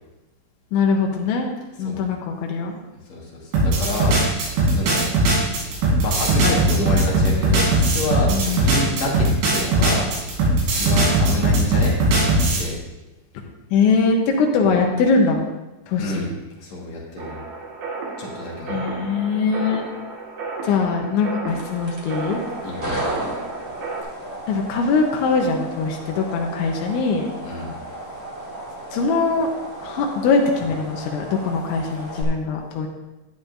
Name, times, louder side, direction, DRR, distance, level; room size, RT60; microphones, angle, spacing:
voice 1, 0.7-1.5 1.8-2.7 8.3-8.8 13.3-15.4 15.9-16.3 18.7-19.9 20.6-22.4 24.5-27.3 28.9-29.5 29.8-32.9, left 4 dB, 80° left, 1 dB, 3.2 m, -22 dB
voice 2, 3.1-5.1 6.0-10.1 10.7-12.3 12.6-12.8 16.0-16.3 16.6-17.4 18.2-18.8 22.6-23.0 27.4-27.7, left 2 dB, 60° left, -3 dB, 1.8 m, -28 dB
sound 1, 3.5-12.7, right 2 dB, 80° right, 5.4 m, -19 dB
sound 2, 17.2-24.0, right 3 dB, 60° right, 3.0 m, -33 dB
sound 3, 21.5-32.2, right 1 dB, 35° right, 0.9 m, -34 dB
13.5 x 10.0 x 2.6 m, 1.1 s
omnidirectional pair, 5.5 m